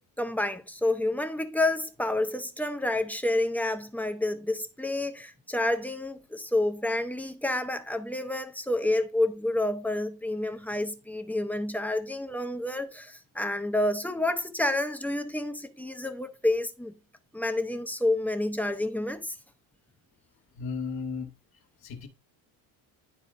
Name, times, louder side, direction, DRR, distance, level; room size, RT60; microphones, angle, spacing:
voice 1, 0.0-16.9 17.3-19.3, left 1 dB, 5° left, 0.6 m, -29 dB
voice 2, 20.5-21.3 21.8-22.1, left 5 dB, 55° left, 1.4 m, -34 dB
11.0 x 4.4 x 2.5 m
cardioid pair, 145°, 43 cm